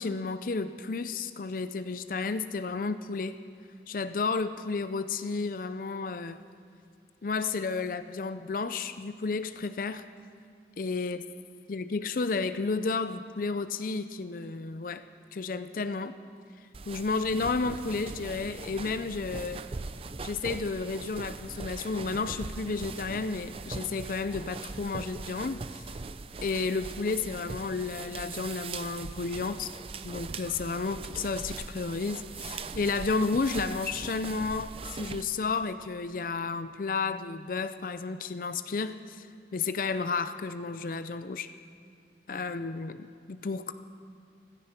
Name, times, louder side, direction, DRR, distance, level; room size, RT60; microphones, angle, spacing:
voice 1, 0.0-3.4 3.9-6.4 7.2-10.0 10.8-11.2 11.7-15.0 15.3-16.1 16.9-19.7 20.2-25.8 26.4-29.7 30.0-39.3 39.5-41.5 42.3-43.7, left 4 dB, 50° left, 11 dB, 0.5 m, -32 dB
sound 1, 16.7-35.2, right 4 dB, 35° right, 0.5 m, -41 dB
16.0 x 14.0 x 5.8 m, 2.4 s
head